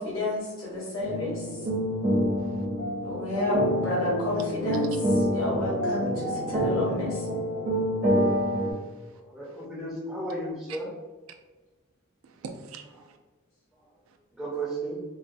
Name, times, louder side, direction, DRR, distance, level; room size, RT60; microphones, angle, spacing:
voice 1, 0.0-1.7 3.0-4.9 5.2-7.3, left 2 dB, 80° left, -6 dB, 0.9 m, -30 dB
sound 1, 1.0-8.7, equal, 45° right, 0.7 m, -27 dB
voice 2, 8.2-9.7 10.7-10.8 12.2-13.2 14.1-14.2, right 5 dB, 75° right, 4 dB, 0.3 m, -46 dB
voice 3, 9.3-10.9 14.4-15.0, right 2 dB, ahead, -6 dB, 0.5 m, -33 dB
3.9 x 2.0 x 2.5 m, 1.3 s
head